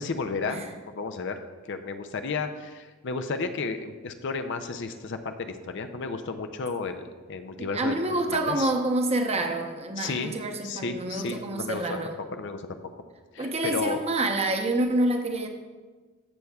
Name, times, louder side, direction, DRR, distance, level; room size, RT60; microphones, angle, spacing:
voice 1, 0.0-8.7 10.0-10.3 10.6-11.9 12.3-12.8 13.3-14.0, left 4 dB, 60° left, 7 dB, 0.5 m, -33 dB
voice 2, 7.6-12.1 13.4-15.5, right 2 dB, 30° right, 4 dB, 0.8 m, -27 dB
14.0 x 6.9 x 2.3 m, 1.3 s
head